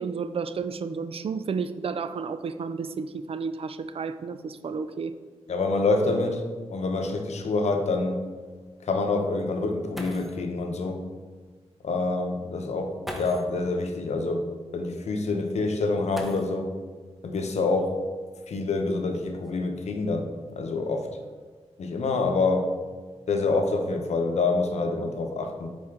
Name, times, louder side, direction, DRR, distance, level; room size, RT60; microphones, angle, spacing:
voice 1, 0.0-5.1, right 5 dB, 55° right, 11 dB, 0.4 m, -32 dB
voice 2, 5.5-6.4 6.7-8.2 8.8-11.0 11.8-14.5 14.7-16.7 17.2-18.0 18.5-20.3 20.6-21.1 21.8-22.7 23.3-25.7, left 3 dB, 75° left, 4 dB, 0.8 m, -26 dB
sound 1, 9.9-10.5 11.8-11.9 13.0-13.6 16.1-16.8 18.2-18.3 19.0-20.5 21.2-21.6 21.9-22.3, equal, ahead, 1.0 m, -42 dB
7.7 x 4.3 x 3.7 m, 1.5 s
cardioid pair, 65°, 11 cm